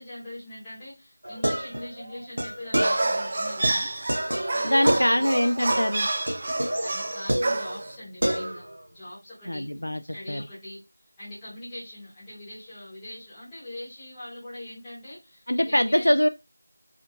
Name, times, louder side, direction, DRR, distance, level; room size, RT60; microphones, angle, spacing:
voice 1, 0.0-3.9 4.5-5.6 6.8-9.7 10.1-10.8 11.2-16.1, left 1 dB, 5° left, -12 dB, 0.9 m, -41 dB
sound 1, 1.2-3.3 3.6-5.4 5.7-6.0 6.3-8.0 8.2-8.8, right 1 dB, 70° right, 0.7 m, -29 dB
sound 2, 2.8-7.9, right 2 dB, 25° right, 0.3 m, -28 dB
voice 2, 4.6-6.1 9.5-10.0 10.3-10.4 15.5-16.3, equal, 85° left, 9 dB, 0.3 m, -23 dB
3.5 x 2.6 x 2.2 m, 0.24 s
figure-of-eight pair, 175°, 0 cm